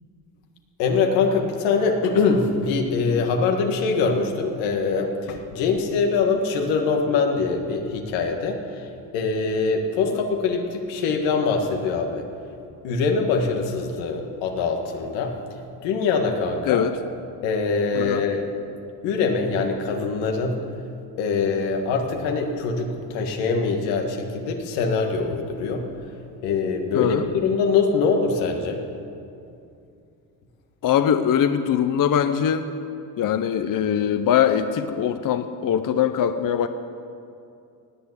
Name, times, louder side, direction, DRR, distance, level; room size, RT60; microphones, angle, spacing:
voice 1, 0.8-12.3 12.8-15.4 15.8-16.8 17.4-18.4 19.0-20.6 21.2-26.1 26.4-28.8, left 4 dB, 90° left, 3 dB, 1.9 m, -23 dB
voice 2, 16.7-17.0 17.9-18.2 26.9-27.3 30.8-32.7 33.2-36.7, left 9 dB, 50° left, 9 dB, 0.8 m, -22 dB
18.5 x 8.4 x 8.2 m, 2.5 s
supercardioid pair, 85°, 43 cm